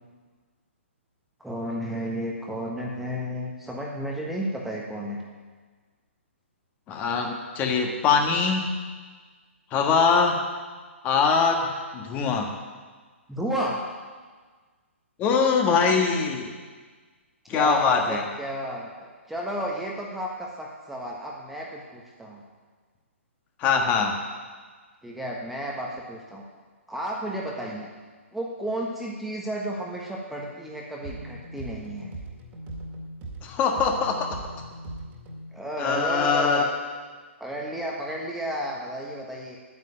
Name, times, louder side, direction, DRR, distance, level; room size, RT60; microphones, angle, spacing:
voice 1, 1.4-5.2 13.3-13.8 17.5-22.4 25.0-26.4 26.9-27.9 28.3-32.1 35.5-36.7 37.4-39.6, equal, ahead, -2 dB, 1.3 m, -32 dB
voice 2, 6.9-8.6 9.7-10.4 11.0-12.5 15.2-16.5 17.5-18.2 23.6-24.1 33.4-34.4 35.8-36.7, left 5 dB, 20° left, 3 dB, 1.5 m, -22 dB
sound 1, 31.0-35.6, right 1 dB, 25° right, 2.1 m, -39 dB
9.8 x 9.6 x 9.0 m, 1.5 s
figure-of-eight pair, 125°, 7 cm